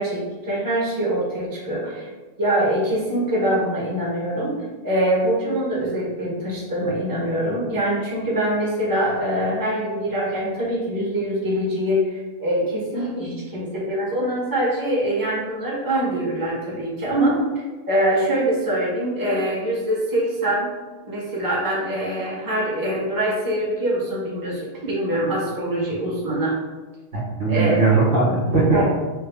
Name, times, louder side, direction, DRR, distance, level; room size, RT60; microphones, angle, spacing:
voice 1, 0.0-2.1 2.4-4.5 4.8-20.7 21.1-26.6 27.5-27.8 28.7-28.9, right 1 dB, 20° right, -6 dB, 1.1 m, -24 dB
voice 2, 27.1-28.9, right 3 dB, 65° right, -5 dB, 1.4 m, -19 dB
6.1 x 2.1 x 3.4 m, 1.3 s
omnidirectional pair, 1.2 m